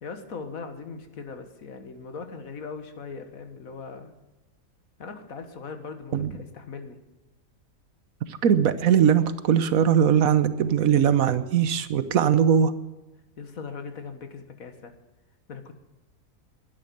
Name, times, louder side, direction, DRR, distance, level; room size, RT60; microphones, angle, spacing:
voice 1, 0.0-4.1 5.0-7.0 13.4-14.9 15.5-15.7, left 5 dB, 70° left, 7 dB, 1.9 m, -39 dB
voice 2, 8.3-12.7, right 8 dB, 70° right, 13 dB, 1.3 m, -20 dB
12.0 x 10.5 x 9.2 m, 1.1 s
omnidirectional pair, 1.5 m